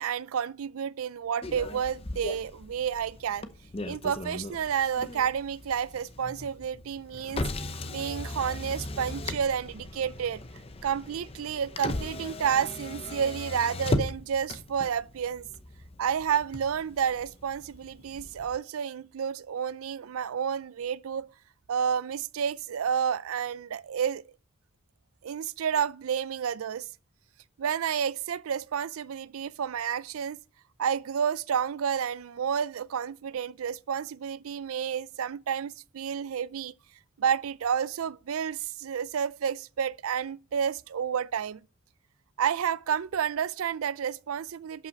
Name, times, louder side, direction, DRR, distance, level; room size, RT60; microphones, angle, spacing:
voice 1, 0.0-3.5 3.9-7.5 7.9-10.4 10.8-15.5 16.0-21.3 21.7-24.2 25.2-26.9 27.6-30.4 30.8-36.7 37.2-41.6 42.4-44.9, right 8 dB, 90° right, 0.4 m, -30 dB
Motor vehicle (road), 1.4-18.6, left 2 dB, 30° left, 0.8 m, -37 dB
11.5 x 5.7 x 5.3 m
head